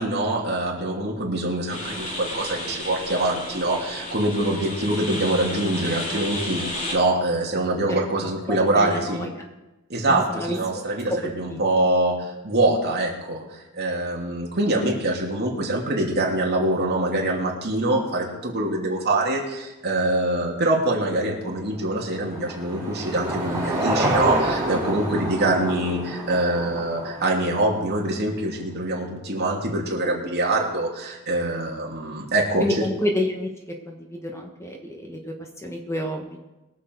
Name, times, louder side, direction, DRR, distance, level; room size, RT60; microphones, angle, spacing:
voice 1, 0.0-6.6 6.9-9.2 9.9-32.9, right 1 dB, 50° right, -2 dB, 3.0 m, -24 dB
sound 1, 1.7-7.0, left 1 dB, 35° left, 3.2 m, -32 dB
voice 2, 8.2-9.3 10.1-10.5 11.5-11.6 32.6-33.5 33.8-36.4, left 1 dB, 15° left, 2 dB, 1.4 m, -29 dB
Car passing by / Engine, 21.4-27.9, right 1 dB, 15° right, 3.7 m, -28 dB
22.5 x 7.5 x 4.7 m, 1.0 s
head